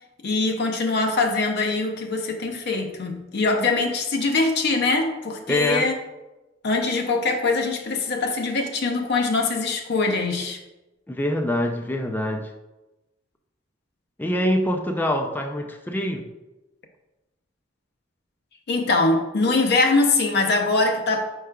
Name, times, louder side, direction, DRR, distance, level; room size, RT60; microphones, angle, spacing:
voice 1, 0.2-5.9 6.6-10.6 18.7-21.2, left 3 dB, 60° left, 4 dB, 0.6 m, -23 dB
voice 2, 5.5-5.9 11.1-12.5 14.2-16.3, left 1 dB, 10° left, 3 dB, 0.4 m, -24 dB
4.7 x 4.7 x 2.2 m, 1.0 s
head